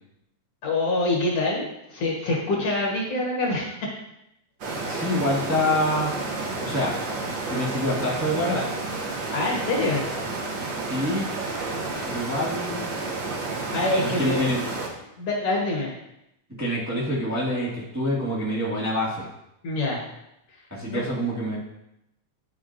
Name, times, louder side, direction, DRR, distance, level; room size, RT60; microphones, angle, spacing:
voice 1, 0.6-3.9 9.3-10.1 13.7-14.4 15.2-16.0 19.6-20.0 20.9-21.0, left 2 dB, 60° left, -3 dB, 1.9 m, -25 dB
sound 1, 4.6-14.9, right 3 dB, 70° right, 1.1 m, -31 dB
voice 2, 4.9-6.1 6.6-6.9 7.5-8.7 10.8-11.3 12.0-12.8 14.2-14.6 16.6-19.2 20.7-21.6, left 1 dB, 20° right, -7 dB, 0.4 m, -26 dB
11.0 x 4.5 x 2.5 m, 0.84 s
omnidirectional pair, 3.5 m